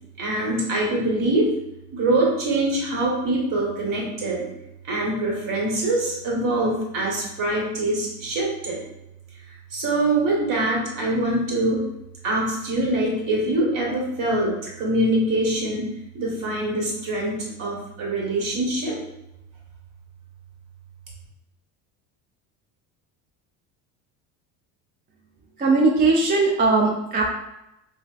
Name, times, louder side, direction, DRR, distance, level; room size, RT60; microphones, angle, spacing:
voice 1, 0.2-1.5 1.9-4.4 4.8-8.8 9.7-11.8 12.2-19.0, right 1 dB, 45° right, -3 dB, 1.3 m, -24 dB
voice 2, 25.6-27.3, right 3 dB, 20° right, -2 dB, 0.4 m, -19 dB
3.1 x 2.1 x 2.4 m, 0.87 s
hypercardioid pair, 80°, 43 cm